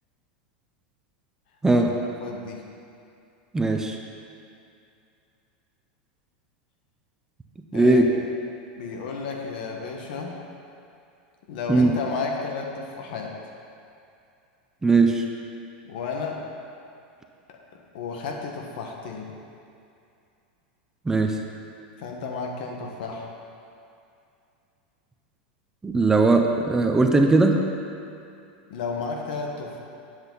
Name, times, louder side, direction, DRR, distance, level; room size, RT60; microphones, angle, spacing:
voice 1, 2.2-2.6 7.7-8.3 8.8-10.4 11.5-13.3 15.8-16.4 17.5-17.6 17.9-19.3 22.0-23.3 28.7-29.8, left 4 dB, 70° left, 1 dB, 1.6 m, -32 dB
voice 2, 3.5-4.0 7.7-8.1 11.7-11.9 14.8-15.2 21.1-21.4 25.8-27.6, right 3 dB, 10° right, 3 dB, 0.6 m, -19 dB
10.5 x 7.8 x 4.0 m, 2.5 s
supercardioid pair, 130°, 5 cm